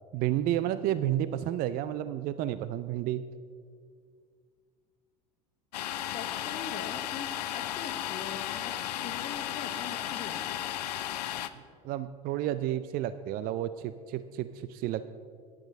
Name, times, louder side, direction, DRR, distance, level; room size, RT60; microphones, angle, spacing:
voice 1, 0.1-3.2 11.8-15.0, right 12 dB, 45° right, 13 dB, 0.4 m, -31 dB
Domestic sounds home sounds, 5.7-11.5, left 12 dB, 80° left, 0.6 m, -34 dB
voice 2, 6.1-8.8 9.0-10.6, left 6 dB, 40° left, 2 dB, 0.9 m, -42 dB
9.8 x 8.9 x 5.3 m, 2.1 s
hypercardioid pair, 80°, 20 cm